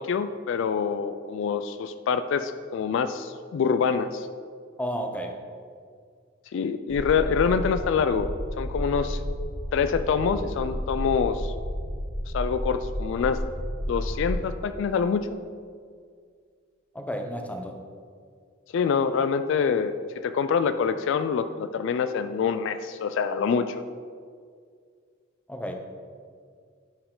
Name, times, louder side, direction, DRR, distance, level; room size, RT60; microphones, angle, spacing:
voice 1, 0.0-4.3 6.5-8.3 8.6-9.2 9.7-11.5 12.3-13.4 13.9-15.3 18.7-23.8, left 6 dB, 65° left, 11 dB, 0.3 m, -25 dB
voice 2, 4.8-5.4 16.9-17.8 25.5-25.7, equal, 5° left, 3 dB, 0.6 m, -32 dB
sound 1, 6.9-14.4, equal, 50° right, 1.2 m, -32 dB
9.9 x 4.5 x 3.8 m, 2.1 s
head